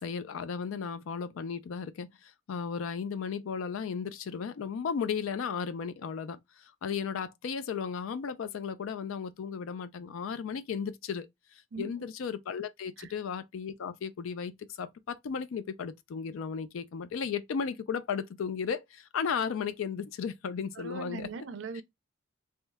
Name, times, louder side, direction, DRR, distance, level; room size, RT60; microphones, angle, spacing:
voice 1, 0.0-11.3 11.8-21.3, left 6 dB, 80° left, 0.4 m, -35 dB
voice 2, 20.8-21.8, right 4 dB, 65° right, 0.4 m, -40 dB
2.8 x 2.1 x 3.3 m
head